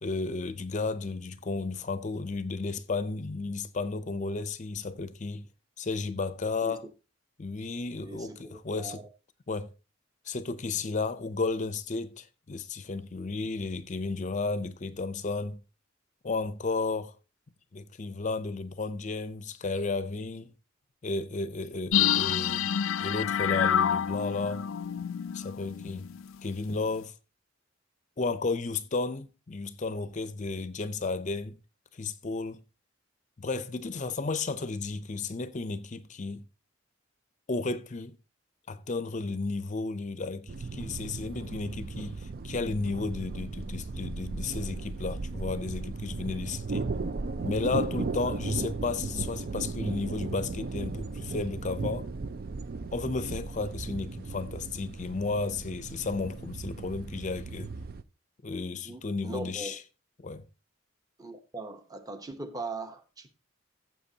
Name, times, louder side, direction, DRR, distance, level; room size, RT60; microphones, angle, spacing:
voice 1, 0.0-5.5 5.8-6.8 7.4-9.0 9.5-9.7 10.3-15.6 16.2-17.1 17.7-20.5 21.0-22.7 23.0-24.6 25.3-26.1 26.4-27.1 28.2-31.6 31.9-32.6 33.4-36.4 37.5-38.2 38.7-46.9 47.4-52.1 52.9-57.7 58.4-59.8 60.2-60.5, left 3 dB, 35° left, 0.6 m, -33 dB
voice 2, 8.0-9.0 10.7-10.9 48.2-48.4 58.8-59.8 61.2-63.3, right 2 dB, 20° right, 0.9 m, -40 dB
ambient key swirl, 21.9-26.3 26.6-26.7, left 9 dB, 85° left, 0.4 m, -28 dB
sound 1, 40.5-58.0, right 3 dB, 50° right, 0.4 m, -36 dB
15.0 x 7.5 x 2.8 m
head